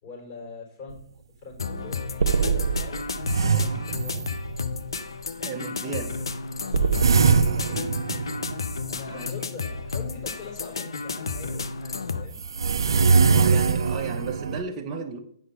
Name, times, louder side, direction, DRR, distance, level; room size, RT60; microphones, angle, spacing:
voice 1, 0.0-1.0 1.4-2.0 2.3-3.1 3.5-4.3 6.8-7.1 7.4-7.8 8.9-12.4, left 4 dB, 40° left, -1 dB, 4.1 m, -43 dB
sound 1, 0.9-1.0 1.5-1.6 2.2-4.7 6.7-9.1 11.3-11.4 12.4-14.6, right 5 dB, 85° right, 0.5 m, -22 dB
sound 2, 1.6-12.3, left 4 dB, 85° left, 0.7 m, -32 dB
voice 2, 5.4-6.2 9.1-9.3 13.2-15.2, right 5 dB, 20° right, 0 dB, 0.8 m, -34 dB
8.4 x 5.3 x 5.4 m, 0.67 s
hypercardioid pair, 145°, 2 cm